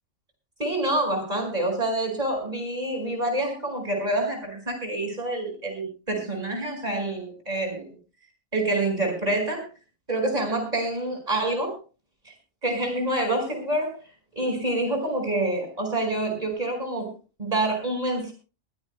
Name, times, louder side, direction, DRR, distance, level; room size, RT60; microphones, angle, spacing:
voice 1, 0.6-7.9 8.5-9.6 10.1-11.8 12.6-13.9 14.4-17.1 17.4-18.3, right 2 dB, 30° right, 2 dB, 5.4 m, -27 dB
21.5 x 16.5 x 2.2 m, 0.34 s
omnidirectional pair, 1.3 m